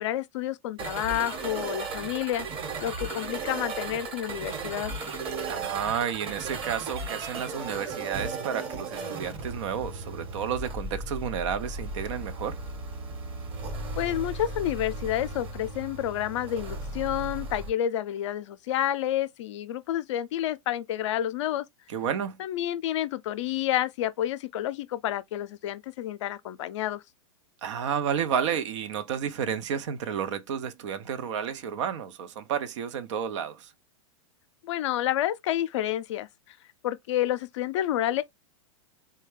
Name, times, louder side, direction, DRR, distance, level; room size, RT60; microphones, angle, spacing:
voice 1, 0.0-2.5 2.8-4.9 14.0-21.6 22.4-27.0 34.6-36.6 36.8-38.2, left 12 dB, 60° left, 0.5 m, -29 dB
sound 1, 0.8-17.7, right 3 dB, 35° right, 1.2 m, -36 dB
voice 2, 5.5-12.6 21.9-22.4 27.6-33.7, right 8 dB, 60° right, 0.7 m, -31 dB
3.5 x 2.2 x 3.2 m
hypercardioid pair, 100°, 17 cm